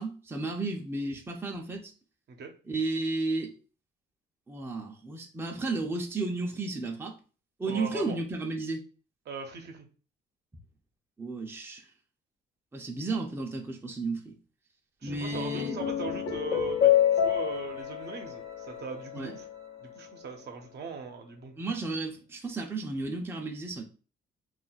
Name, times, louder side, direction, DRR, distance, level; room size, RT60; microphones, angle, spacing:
voice 1, 0.0-1.9 2.7-3.5 4.5-7.2 7.6-8.8 11.2-11.9 12.7-14.4 15.0-15.8 19.1-19.3 21.6-23.8, right 2 dB, 10° right, 0.5 m, -33 dB
voice 2, 7.7-8.2 9.3-9.9 15.0-19.5 19.8-21.6, right 5 dB, 55° right, 0.7 m, -40 dB
Simple Piano Logo, 15.1-19.6, left 10 dB, 90° left, 0.8 m, -28 dB
2.4 x 2.1 x 3.9 m
cardioid pair, 90°, 20 cm